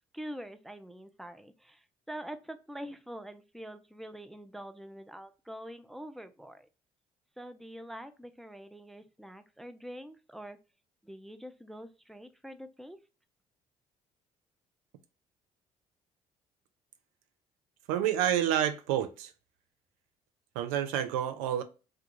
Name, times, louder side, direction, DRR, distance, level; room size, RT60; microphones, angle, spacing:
voice 1, 0.1-6.7 7.4-10.6 11.0-13.0, equal, ahead, 0.3 m, -45 dB
voice 2, 17.9-19.3 20.6-21.6, right 10 dB, 75° right, 0.4 m, -29 dB
2.3 x 2.3 x 2.8 m
hypercardioid pair, 50°, 18 cm